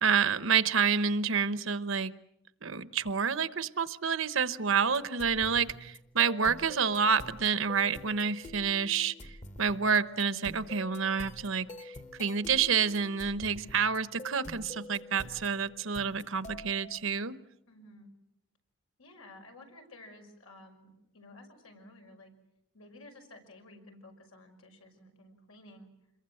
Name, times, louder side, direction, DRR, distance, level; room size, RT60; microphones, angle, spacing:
voice 1, 0.0-2.1 2.6-9.1 9.6-17.4, right 6 dB, 70° right, 14 dB, 0.9 m, -28 dB
sound 1, 4.7-17.0, equal, 35° left, 1.2 m, -47 dB
voice 2, 15.1-15.5 17.7-18.1 19.0-22.3 22.7-25.9, left 1 dB, 90° left, 3 dB, 5.9 m, -53 dB
27.0 x 22.5 x 7.8 m, 0.81 s
head